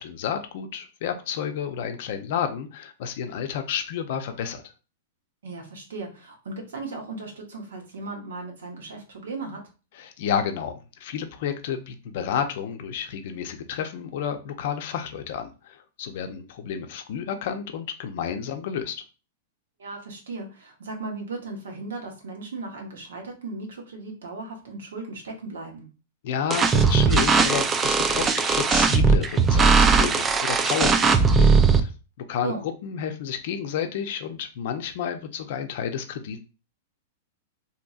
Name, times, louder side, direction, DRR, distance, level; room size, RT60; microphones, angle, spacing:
voice 1, 0.0-4.6 9.9-10.7 11.0-19.0 26.2-31.9 32.3-32.5 32.8-36.4, left 8 dB, 60° left, 7 dB, 0.5 m, -31 dB
voice 2, 5.4-9.6 19.8-25.9 32.4-32.6, right 3 dB, 85° right, 1 dB, 0.9 m, -36 dB
sound 1, 26.5-31.8, right 4 dB, 20° right, 0.3 m, -19 dB
2.8 x 2.7 x 2.3 m, 0.33 s
hypercardioid pair, 130°, 0 cm